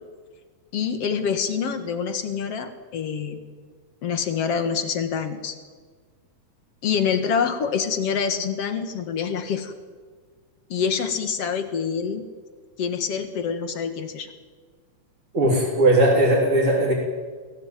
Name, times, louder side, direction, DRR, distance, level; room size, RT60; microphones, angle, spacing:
voice 1, 0.7-3.4 4.0-5.6 6.8-9.7 10.7-12.3 12.8-14.3, left 6 dB, 55° left, 8 dB, 2.5 m, -26 dB
voice 2, 15.3-16.9, right 1 dB, 45° right, -4 dB, 4.4 m, -18 dB
23.0 x 16.5 x 9.1 m, 1.5 s
omnidirectional pair, 3.5 m